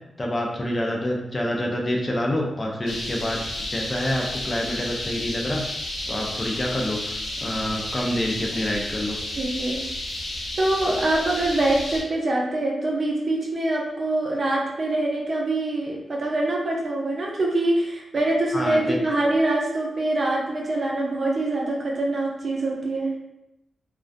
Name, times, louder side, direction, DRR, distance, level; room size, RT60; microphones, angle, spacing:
voice 1, 0.2-5.6 6.1-9.2 18.5-19.0, left 1 dB, 25° left, 0 dB, 0.4 m, -27 dB
sound 1, 2.9-12.0, left 1 dB, 85° left, 0.6 m, -32 dB
voice 2, 9.4-9.8 10.6-23.2, right 2 dB, 50° right, -2 dB, 0.5 m, -24 dB
2.4 x 2.2 x 2.4 m, 0.89 s
wide cardioid pair, 100°, 0 cm